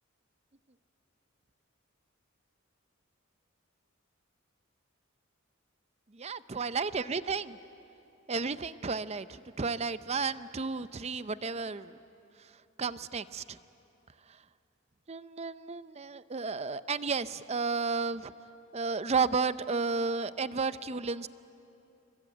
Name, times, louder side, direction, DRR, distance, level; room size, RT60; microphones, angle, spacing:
voice 1, 6.2-7.6 8.3-12.0 12.8-13.6 15.1-18.3 18.7-21.3, right 4 dB, 30° right, 14 dB, 0.6 m, -32 dB
27.5 x 24.0 x 8.9 m, 2.9 s
head